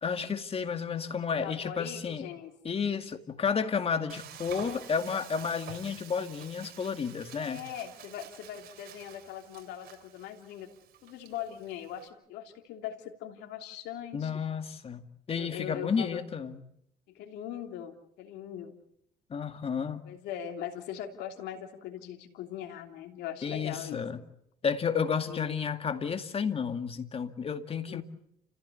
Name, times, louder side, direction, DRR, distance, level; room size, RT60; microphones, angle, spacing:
voice 1, 0.0-2.3 2.6-7.6 14.1-15.0 15.3-16.6 19.3-20.0 23.4-24.2 24.6-28.0, left 6 dB, 35° left, 8 dB, 2.2 m, -31 dB
voice 2, 1.4-2.5 7.4-10.7 11.0-14.3 15.3-16.2 17.1-18.8 20.0-24.0 25.3-25.6 27.9-28.0, left 10 dB, 85° left, 4 dB, 3.1 m, -40 dB
Frying (food), 4.1-12.1, right 10 dB, 65° right, 3.7 m, -49 dB
29.5 x 15.5 x 8.5 m, 0.75 s
cardioid pair, 110°, 17 cm